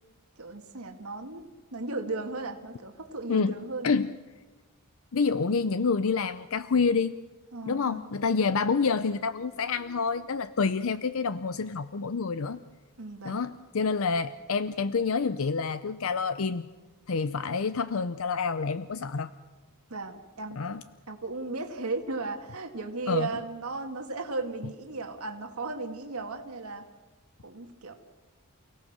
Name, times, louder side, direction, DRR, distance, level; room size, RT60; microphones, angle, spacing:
voice 1, 0.4-3.9 7.5-8.1 13.0-13.4 19.9-20.6 21.1-26.9 27.4-27.9, right 3 dB, 80° right, 4 dB, 2.0 m, -36 dB
voice 2, 5.1-7.2 7.7-12.6 13.2-16.7 17.1-19.3 20.6-20.8 23.1-23.3, left 5 dB, 70° left, 13 dB, 0.6 m, -28 dB
29.5 x 17.5 x 6.6 m, 1.2 s
head